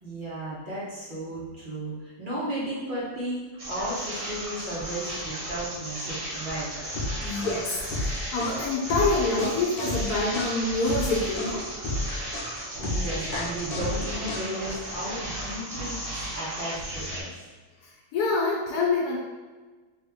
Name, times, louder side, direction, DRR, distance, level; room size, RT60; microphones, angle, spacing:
voice 1, 0.0-6.7 7.2-7.3 12.8-16.0 16.3-17.3, right 1 dB, 40° right, -8 dB, 0.9 m, -34 dB
sound 1, 3.6-17.2, right 1 dB, 55° right, 1.2 m, -35 dB
sound 2, 6.9-14.8, left 1 dB, 60° left, 0.6 m, -32 dB
voice 2, 7.2-11.7 17.8-19.2, left 3 dB, 80° left, -4 dB, 1.2 m, -26 dB
3.1 x 2.7 x 3.4 m, 1.3 s
omnidirectional pair, 1.6 m